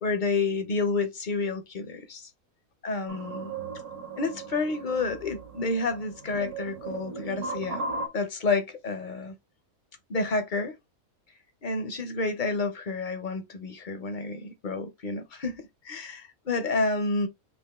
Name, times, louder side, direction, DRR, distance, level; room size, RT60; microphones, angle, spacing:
voice 1, 0.0-2.3 2.8-3.5 4.2-7.8 8.1-9.3 10.1-10.7 11.6-17.3, left 3 dB, 45° left, 0.7 m, -29 dB
sound 1, 3.1-8.1, right 3 dB, 60° right, 1.4 m, -37 dB
5.3 x 2.6 x 3.5 m
omnidirectional pair, 1.5 m